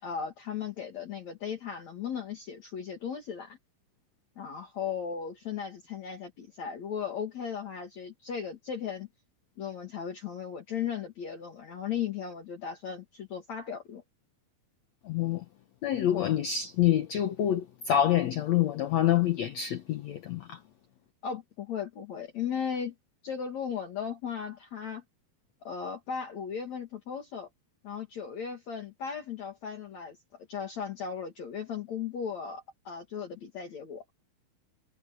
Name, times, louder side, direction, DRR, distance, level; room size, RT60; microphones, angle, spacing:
voice 1, 0.0-3.6 4.4-9.1 9.6-14.0 21.2-22.9 23.2-25.0 25.6-27.5 27.8-30.2 30.5-34.0, left 7 dB, 50° left, 3.1 m, -36 dB
voice 2, 15.0-15.4 15.8-20.6, left 11 dB, 70° left, 1.7 m, -27 dB
omnidirectional pair, 4.5 m